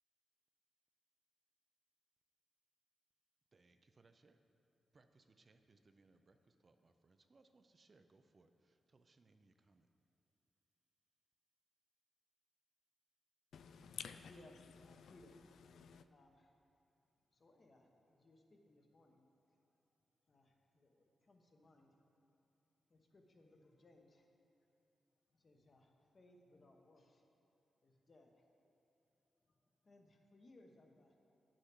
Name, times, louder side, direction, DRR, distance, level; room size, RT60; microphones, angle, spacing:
voice 1, 3.5-4.4 4.9-9.9, right 3 dB, 30° right, 8 dB, 0.4 m, -70 dB
voice 2, 13.5-16.1, left 7 dB, 85° left, 10 dB, 0.3 m, -53 dB
voice 3, 14.3-15.4 16.1-16.6 17.3-19.2 20.3-22.0 22.9-24.3 25.3-27.3 27.8-28.4 29.4-31.2, left 1 dB, 35° left, 3 dB, 0.9 m, -66 dB
9.5 x 6.4 x 5.9 m, 2.7 s
wide cardioid pair, 140°, 0 cm